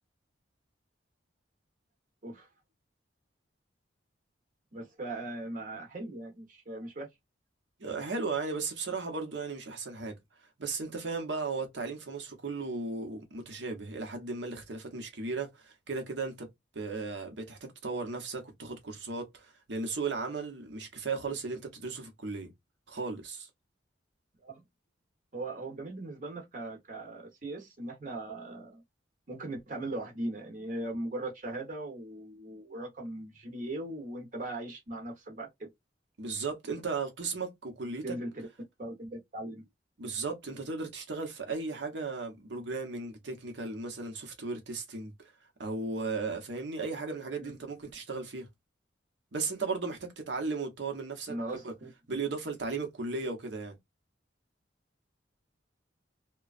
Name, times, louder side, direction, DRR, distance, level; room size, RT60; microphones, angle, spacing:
voice 1, 4.7-7.1 24.4-24.6 25.3-28.8 29.3-35.7 38.0-38.3 38.8-39.6 47.4-47.5 51.3-51.9, right 1 dB, 45° right, 1.0 m, -39 dB
voice 2, 7.8-10.2 10.6-16.5 16.7-22.5 22.9-23.5 36.2-38.2 40.0-45.3 45.6-48.5 49.3-51.4 51.6-51.7 52.1-53.7, right 4 dB, 70° right, 1.0 m, -36 dB
3.0 x 2.2 x 2.4 m
head